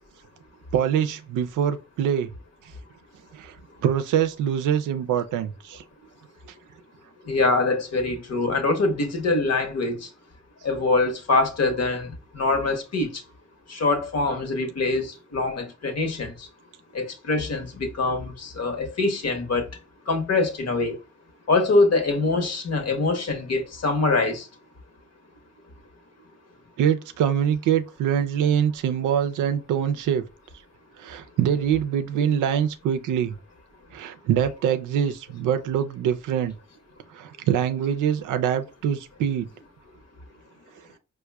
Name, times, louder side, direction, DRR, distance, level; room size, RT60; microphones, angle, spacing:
voice 1, 0.7-2.3 3.4-3.6 3.8-5.8 26.8-30.2 31.0-33.3 33.9-36.5 37.1-39.5, right 9 dB, 85° right, 0.5 m, -24 dB
voice 2, 7.3-10.1 10.6-13.2 13.7-16.5 16.9-19.7 20.1-21.0 21.5-24.5, left 3 dB, 60° left, 0.9 m, -24 dB
4.7 x 2.2 x 2.2 m
supercardioid pair, 50°, 30 cm